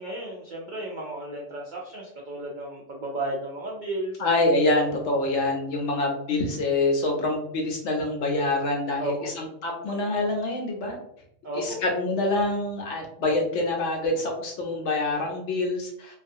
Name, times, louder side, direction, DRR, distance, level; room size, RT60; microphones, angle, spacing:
voice 1, 0.0-4.2 9.0-9.3 11.4-11.8, right 1 dB, 85° right, -2 dB, 0.4 m, -33 dB
voice 2, 4.2-11.0 11.5-16.2, left 2 dB, 65° left, 1 dB, 0.9 m, -26 dB
2.3 x 2.3 x 2.6 m, 0.72 s
omnidirectional pair, 1.4 m